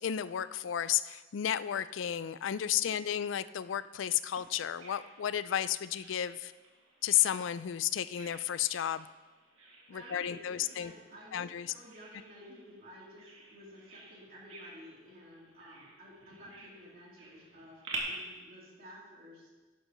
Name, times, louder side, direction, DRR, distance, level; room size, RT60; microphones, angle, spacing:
voice 1, 0.0-6.5 7.0-9.1 9.9-10.9 11.3-11.7, left 10 dB, 70° left, 16 dB, 0.4 m, -32 dB
Bird vocalization bird call bird song, 4.4-18.0, right 4 dB, 85° right, 2.3 m, -51 dB
voice 2, 9.9-19.5, equal, 50° right, -5 dB, 3.3 m, -53 dB
12.0 x 11.0 x 3.1 m, 1.3 s
head